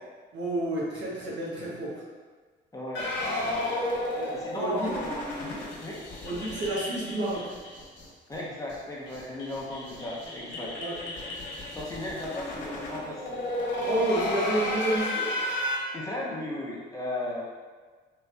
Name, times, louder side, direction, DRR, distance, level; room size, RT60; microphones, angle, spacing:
voice 1, 0.3-1.9 4.2-4.9 6.2-7.5 10.8-10.9 13.8-15.3, right 1 dB, 65° right, -6 dB, 1.2 m, -30 dB
voice 2, 2.7-3.8 4.3-6.0 8.3-10.8 11.7-13.4 15.9-17.4, left 1 dB, 15° left, -5 dB, 0.7 m, -36 dB
sound 1, 3.0-8.1 8.3-8.4 8.7-8.8 9.1-15.8, left 1 dB, 65° left, 0.9 m, -33 dB
3.6 x 2.9 x 2.2 m, 1.4 s
cardioid pair, 90°, 20 cm